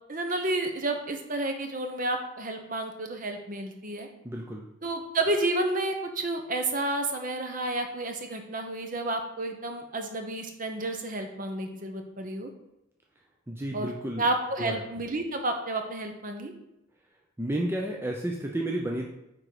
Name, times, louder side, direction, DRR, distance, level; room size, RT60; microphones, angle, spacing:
voice 1, 0.1-4.1 4.8-12.5 13.7-13.9 14.2-16.5, right 2 dB, 40° right, 5 dB, 0.9 m, -31 dB
voice 2, 4.2-4.7 13.5-14.2 14.6-14.8 17.4-19.1, right 1 dB, 10° right, 0 dB, 0.5 m, -31 dB
8.9 x 3.8 x 5.0 m, 0.88 s
head